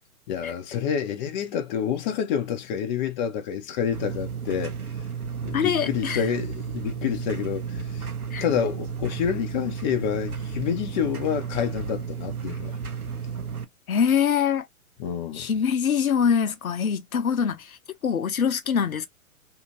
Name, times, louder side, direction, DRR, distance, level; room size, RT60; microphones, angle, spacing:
voice 1, 0.3-4.7 5.4-8.1 8.4-12.8 15.0-15.5, left 8 dB, 30° left, 0.7 m, -28 dB
sound 1, 3.9-13.6, right 6 dB, 85° right, 0.8 m, -33 dB
voice 2, 5.5-6.3 8.3-8.4 13.9-14.7 15.4-17.8 18.0-19.1, left 7 dB, 80° left, 0.7 m, -24 dB
2.8 x 2.5 x 3.0 m
figure-of-eight pair, 110°, 42 cm